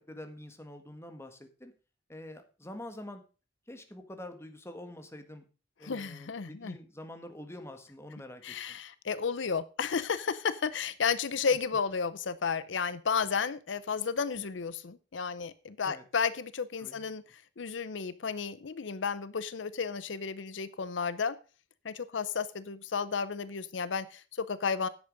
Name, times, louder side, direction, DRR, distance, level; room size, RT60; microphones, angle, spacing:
voice 1, 0.0-1.7 2.1-3.2 3.7-5.4 5.8-8.8 15.8-16.0 16.8-17.0, left 1 dB, 15° left, 7 dB, 1.5 m, -46 dB
voice 2, 5.8-6.8 8.4-21.4 21.8-24.9, left 5 dB, 85° left, 15 dB, 0.6 m, -32 dB
10.5 x 8.1 x 5.3 m, 0.35 s
head